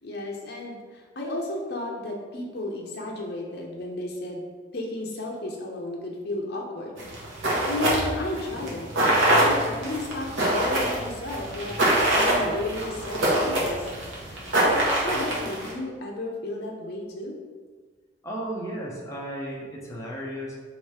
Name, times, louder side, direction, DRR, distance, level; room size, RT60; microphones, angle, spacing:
voice 1, 0.0-4.4 4.7-7.0 7.7-8.9 9.3-11.8 12.1-13.9 14.3-17.3, left 2 dB, 55° left, 0 dB, 0.7 m, -33 dB
sound 1, 7.0-15.7, right 1 dB, 80° right, 1.0 m, -24 dB
voice 2, 18.2-20.5, right 1 dB, 15° left, -3 dB, 0.7 m, -34 dB
3.2 x 3.0 x 4.7 m, 1.5 s
head